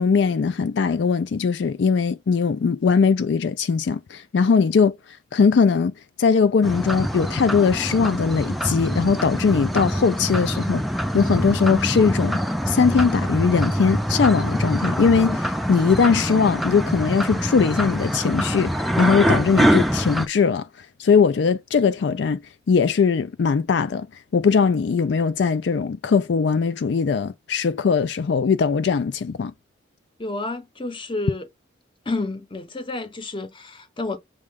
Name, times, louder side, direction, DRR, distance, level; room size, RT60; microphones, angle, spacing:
voice 1, 0.0-4.9 5.3-5.9 6.2-10.8 11.1-12.4 12.7-20.7 21.0-22.4 22.7-24.1 24.3-29.5, left 5 dB, 65° left, 0.4 m, -20 dB
sound 1, 6.6-20.3, equal, ahead, 0.4 m, -24 dB
voice 2, 30.2-31.5 32.1-34.2, left 2 dB, 25° left, 0.7 m, -30 dB
6.4 x 2.4 x 3.4 m
head